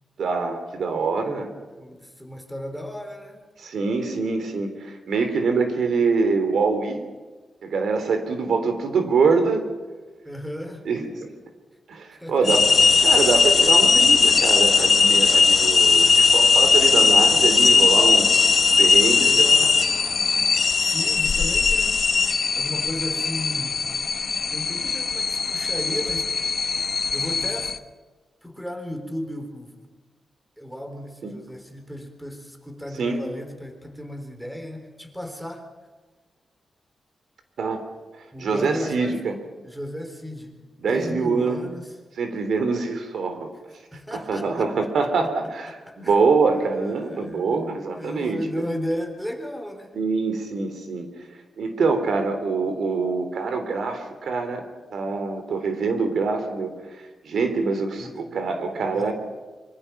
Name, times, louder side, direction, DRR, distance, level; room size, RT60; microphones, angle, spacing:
voice 1, 0.2-1.5 3.6-7.0 7.6-9.6 10.9-11.3 11.9-12.7 13.0-18.3 18.6-19.7 31.2-31.4 32.9-33.2 37.6-37.8 38.4-39.4 40.8-41.6 42.2-43.5 44.1-48.4 49.9-51.1 51.6-54.6 54.9-56.7 57.2-59.1, right 4 dB, 75° right, 7 dB, 3.4 m, -24 dB
voice 2, 1.8-3.4 10.2-10.9 12.2-13.0 20.8-22.1 22.5-23.9 24.5-26.6 27.1-27.7 28.4-29.8 30.6-35.6 38.3-39.2 39.6-40.6 40.9-41.9 43.9-44.7 45.7-46.2 46.5-49.9 58.0-58.2 58.9-59.1, equal, ahead, 5 dB, 3.7 m, -35 dB
sound 1, 12.4-27.8, left 4 dB, 45° left, 1.1 m, -19 dB
26.0 x 24.0 x 5.9 m, 1.3 s
wide cardioid pair, 120°, 0 cm